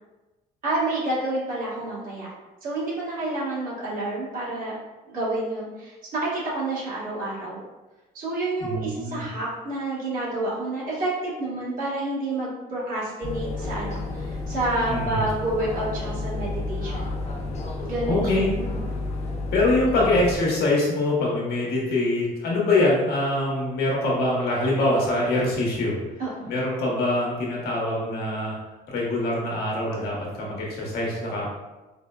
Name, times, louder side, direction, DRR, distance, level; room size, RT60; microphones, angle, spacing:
voice 1, 0.6-2.3 2.6-4.7 5.1-7.6 8.1-17.1 17.8-18.9 19.8-19.9 26.2-26.5, right 2 dB, 55° right, -7 dB, 1.3 m, -29 dB
voice 2, 8.6-9.2 14.9-15.2 18.1-18.5 19.5-26.0 26.5-28.5 28.9-31.5, left 2 dB, 70° left, -3 dB, 1.0 m, -24 dB
sound 1, 13.2-20.3, left 2 dB, 40° left, 0.5 m, -31 dB
4.2 x 2.0 x 2.3 m, 1.1 s
cardioid pair, 110°, 17 cm